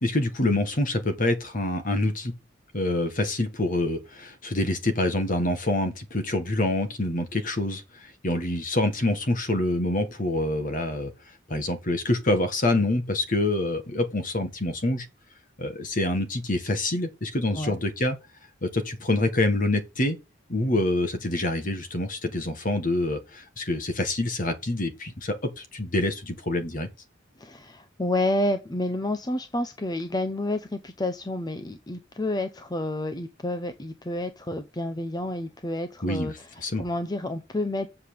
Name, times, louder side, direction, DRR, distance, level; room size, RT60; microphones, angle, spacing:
voice 1, 0.0-2.3 2.7-11.1 11.5-15.0 15.6-18.2 18.6-20.2 20.5-26.9 36.0-36.9, left 1 dB, 45° left, 1.7 m, -26 dB
voice 2, 27.4-36.3 36.8-37.9, left 1 dB, 20° left, 0.8 m, -29 dB
7.7 x 5.5 x 6.9 m
head